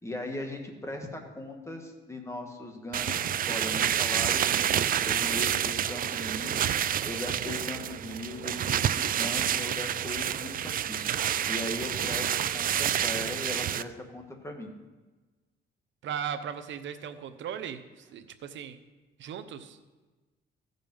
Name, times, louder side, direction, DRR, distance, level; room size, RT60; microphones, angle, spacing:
voice 1, 0.0-6.6 7.0-11.0 11.5-14.7, left 2 dB, 15° left, 3 dB, 1.9 m, -38 dB
sound 1, 2.9-13.8, right 10 dB, 45° right, 0.4 m, -28 dB
voice 2, 16.0-18.8 19.2-19.8, right 8 dB, 70° right, 11 dB, 0.9 m, -37 dB
15.0 x 5.3 x 5.5 m, 1.2 s
cardioid pair, 90°, 20 cm